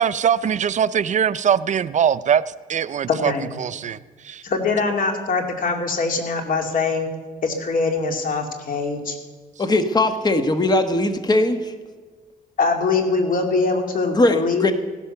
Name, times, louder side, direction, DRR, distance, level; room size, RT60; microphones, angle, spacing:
voice 1, 0.0-2.4 2.7-3.3 3.6-4.0 4.2-4.4, right 8 dB, 50° right, 16 dB, 0.5 m, -21 dB
voice 2, 3.1-3.5 4.4-7.1 7.4-9.2 12.6-14.7, left 4 dB, 60° left, 5 dB, 2.6 m, -22 dB
voice 3, 9.6-11.7 14.1-14.7, left 2 dB, 25° left, 8 dB, 1.3 m, -19 dB
16.5 x 11.5 x 6.8 m, 1.4 s
cardioid pair, 100°, 16 cm